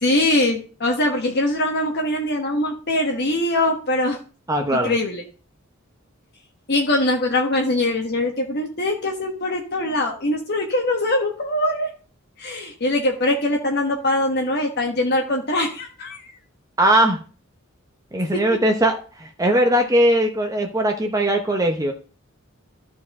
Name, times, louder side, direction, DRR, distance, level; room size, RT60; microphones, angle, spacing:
voice 1, 0.0-4.2 4.8-5.2 6.7-11.9 12.4-16.3 18.3-18.4, left 1 dB, 55° left, 1 dB, 1.3 m, -22 dB
voice 2, 4.5-4.9 16.8-17.2 18.1-21.9, right 1 dB, 15° right, 3 dB, 0.8 m, -19 dB
14.0 x 4.7 x 3.6 m, 0.38 s
head